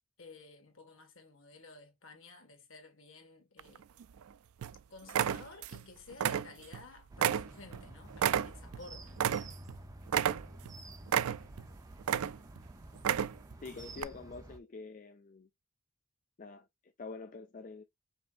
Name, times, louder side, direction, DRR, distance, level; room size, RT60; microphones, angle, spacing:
voice 1, 0.2-3.9 4.9-9.2, left 3 dB, 65° left, 1.7 m, -53 dB
sound 1, 3.6-4.2 4.6-4.8 5.1-5.8 6.1-6.8 7.2-9.8 10.1-10.7 11.1-11.6 12.0-12.6 12.9-13.5 14.0-14.1, right 9 dB, 85° right, 0.4 m, -31 dB
sound 2, 7.1-14.6, right 1 dB, 15° right, 0.6 m, -50 dB
voice 2, 13.6-15.5 16.4-17.8, left 4 dB, 40° left, 0.4 m, -46 dB
5.4 x 3.6 x 2.5 m
head